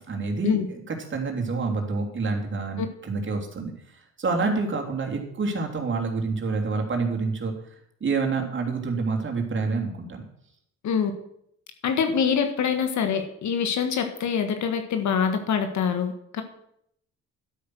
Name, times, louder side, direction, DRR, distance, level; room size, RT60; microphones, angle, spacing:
voice 1, 0.1-3.7 4.2-7.5 8.0-10.2, right 4 dB, 40° right, 2 dB, 3.2 m, -27 dB
voice 2, 11.8-16.4, left 7 dB, 70° left, 7 dB, 1.7 m, -25 dB
12.0 x 8.7 x 6.3 m, 0.72 s
cardioid pair, 90°, 30 cm